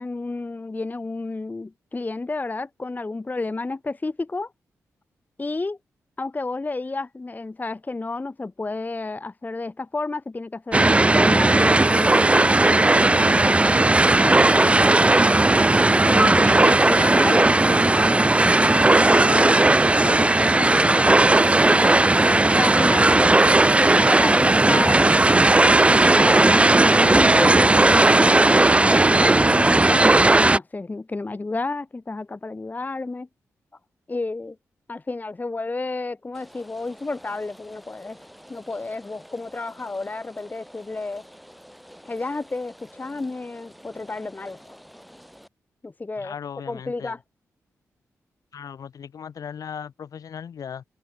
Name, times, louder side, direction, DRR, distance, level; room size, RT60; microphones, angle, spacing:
voice 1, 0.0-4.5 5.4-5.8 6.2-15.3 16.1-19.6 20.0-23.3 23.8-25.1 25.4-33.3 34.1-34.6 34.9-38.2 38.5-41.2 42.1-44.8 45.8-46.3 46.7-47.2, left 3 dB, 25° left, 0.7 m, -31 dB
sound 1, 10.7-30.6, right 2 dB, 20° right, 0.5 m, -16 dB
Rain, 36.3-45.5, equal, ahead, 5.3 m, -49 dB
voice 2, 46.2-47.2 48.5-50.8, left 7 dB, 70° left, 1.8 m, -37 dB
open air
supercardioid pair, 45°, 6 cm